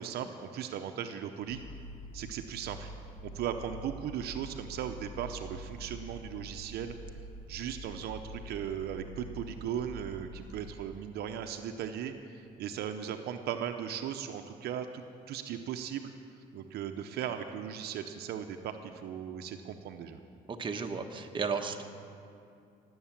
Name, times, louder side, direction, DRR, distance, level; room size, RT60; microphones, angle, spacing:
voice 1, 0.0-1.6 2.1-2.9 3.2-6.9 7.5-16.1 16.5-20.2, right 9 dB, 70° right, 7 dB, 0.8 m, -37 dB
sound 1, 1.5-10.9, right 1 dB, 80° left, 2.9 m, -46 dB
voice 2, 20.5-21.8, right 5 dB, 30° right, 4 dB, 1.2 m, -34 dB
18.5 x 8.1 x 7.4 m, 2.4 s
cardioid pair, 110°, 17 cm